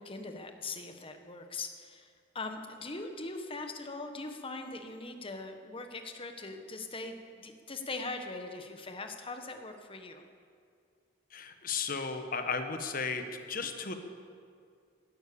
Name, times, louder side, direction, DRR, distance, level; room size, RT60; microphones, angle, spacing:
voice 1, 0.0-10.2, left 3 dB, 30° left, 5 dB, 1.3 m, -41 dB
voice 2, 11.3-13.9, left 5 dB, 45° left, 7 dB, 1.3 m, -35 dB
17.0 x 12.0 x 7.0 m, 2.2 s
head